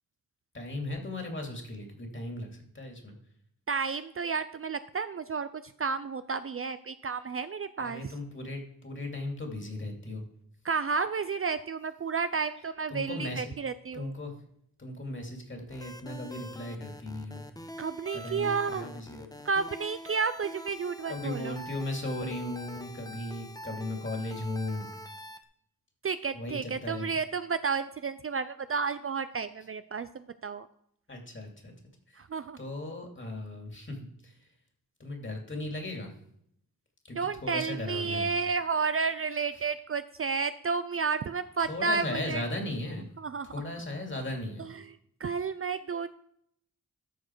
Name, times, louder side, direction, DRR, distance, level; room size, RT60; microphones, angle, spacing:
voice 1, 0.5-3.1 7.8-10.2 12.9-13.4 13.9-14.3 14.8-17.5 18.1-19.3 21.1-24.9 26.3-27.1 31.1-31.7 32.6-34.3 35.0-36.1 37.1-38.3 41.7-43.1 43.5-44.7, left 1 dB, 35° left, 2 dB, 2.5 m, -37 dB
voice 2, 3.7-8.1 10.6-14.1 17.8-18.9 19.4-21.6 26.0-30.7 32.2-32.6 37.1-42.4 43.2-43.5 44.6-46.1, right 5 dB, 40° right, 12 dB, 0.4 m, -31 dB
sound 1, 15.7-25.4, left 1 dB, 10° left, 0.8 m, -45 dB
13.5 x 4.6 x 4.6 m, 0.70 s
cardioid pair, 65°, 34 cm